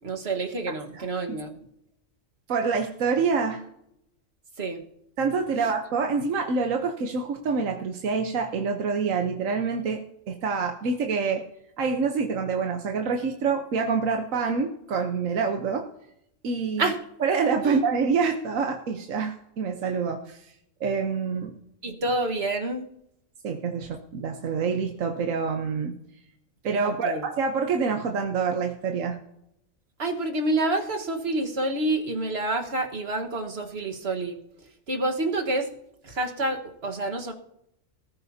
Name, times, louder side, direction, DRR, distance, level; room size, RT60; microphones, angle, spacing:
voice 1, 0.0-1.6 4.6-4.8 16.8-17.0 17.6-17.8 21.8-22.9 26.8-27.2 30.0-34.4 34.9-35.7 36.0-37.3, right 2 dB, 50° right, 3 dB, 1.7 m, -28 dB
voice 2, 2.5-3.6 5.2-10.0 10.3-11.4 11.8-15.9 16.4-16.9 17.2-20.5 20.8-21.5 23.4-25.9 26.6-29.2, right 5 dB, 75° right, 4 dB, 1.4 m, -26 dB
20.0 x 14.0 x 2.8 m, 0.79 s
omnidirectional pair, 1.4 m